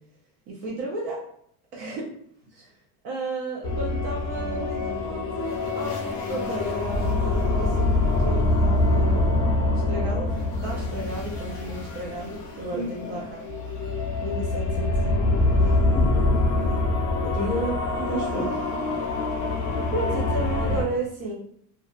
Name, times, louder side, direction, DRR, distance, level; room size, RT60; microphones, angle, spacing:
voice 1, 0.5-1.2 1.7-2.1 2.5-2.8 3.0-9.3 9.9-10.3 10.6-13.5 14.2-15.9 17.5-17.7 19.9-21.3, right 2 dB, 70° right, -2 dB, 0.7 m, -33 dB
sound 1, 3.6-20.8, left 2 dB, 35° left, 0.4 m, -25 dB
voice 2, 12.7-13.2 15.9-16.9 17.2-18.7, equal, 35° right, -5 dB, 0.9 m, -32 dB
2.5 x 2.2 x 2.4 m, 0.67 s
cardioid pair, 175°, 47 cm